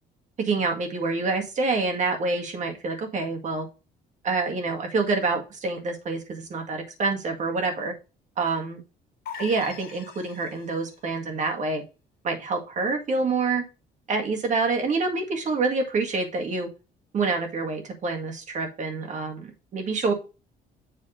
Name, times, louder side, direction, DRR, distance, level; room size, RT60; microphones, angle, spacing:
voice 1, 0.4-3.7 4.2-7.9 8.4-8.8 9.4-11.8 12.2-13.6 14.1-16.7 17.1-20.1, right 3 dB, 45° right, 4 dB, 1.9 m, -27 dB
sound 1, 9.3-10.9, left 7 dB, 65° left, 1.6 m, -41 dB
7.6 x 3.5 x 5.0 m, 0.30 s
cardioid pair, 110°, 17 cm